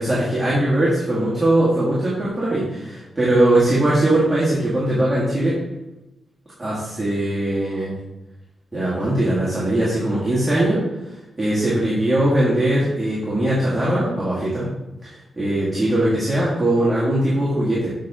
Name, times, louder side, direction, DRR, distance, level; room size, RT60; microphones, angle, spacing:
voice 1, 0.0-5.6 6.6-7.9 8.7-10.8 11.4-14.7 15.0-17.9, right 1 dB, 15° right, -9 dB, 2.1 m, -20 dB
8.3 x 5.6 x 3.7 m, 0.97 s
wide cardioid pair, 140°, 0 cm